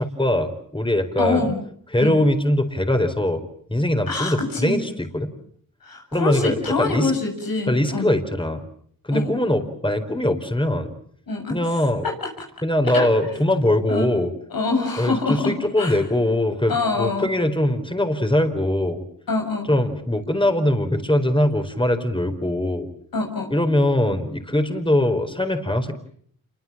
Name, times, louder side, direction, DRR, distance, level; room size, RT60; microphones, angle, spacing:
voice 1, 0.0-1.5 1.9-3.4 3.7-5.3 6.1-7.1 7.7-8.6 9.0-10.9 11.5-12.1 12.6-14.3 15.0-19.0 19.7-22.9 23.5-25.9, left 1 dB, 15° left, 6 dB, 4.4 m, -22 dB
voice 2, 1.2-1.6 2.0-2.2 4.1-4.8 5.8-8.1 9.1-9.3 11.3-11.6 12.0-12.3 12.9-13.4 13.9-14.1 14.5-16.0 16.7-17.3 19.3-19.7 23.1-23.5, left 3 dB, 85° left, 3 dB, 7.1 m, -25 dB
28.0 x 24.0 x 7.4 m, 0.63 s
cardioid pair, 50°, 34 cm